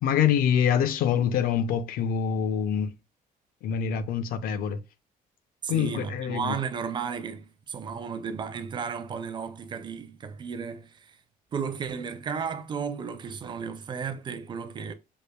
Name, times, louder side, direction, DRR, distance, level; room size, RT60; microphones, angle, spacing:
voice 1, 0.0-2.9 3.6-4.8 5.7-6.6, left 8 dB, 70° left, 0.5 m, -25 dB
voice 2, 5.6-10.9 11.5-14.9, right 6 dB, 30° right, 0.5 m, -34 dB
4.9 x 2.5 x 2.2 m
cardioid pair, 130°, 16 cm